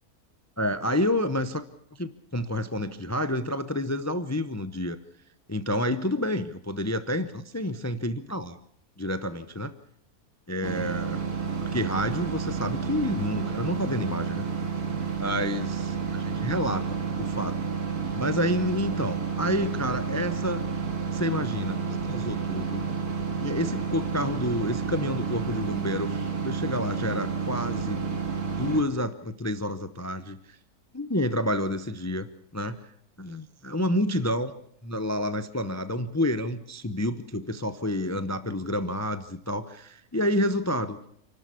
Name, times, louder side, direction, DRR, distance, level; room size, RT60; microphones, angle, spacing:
voice 1, 0.6-1.6 1.9-5.0 5.5-8.6 9.0-9.7 10.5-11.3 11.6-14.5 15.2-17.5 18.1-20.6 21.1-22.9 23.4-26.1 26.4-28.0 28.4-30.6 30.9-32.8 33.2-34.5 34.8-41.0, left 1 dB, 15° left, 12 dB, 0.6 m, -29 dB
sound 1, 10.6-28.8, right 5 dB, 80° right, 2.7 m, -30 dB
28.5 x 12.5 x 8.3 m, 0.73 s
omnidirectional pair, 1.6 m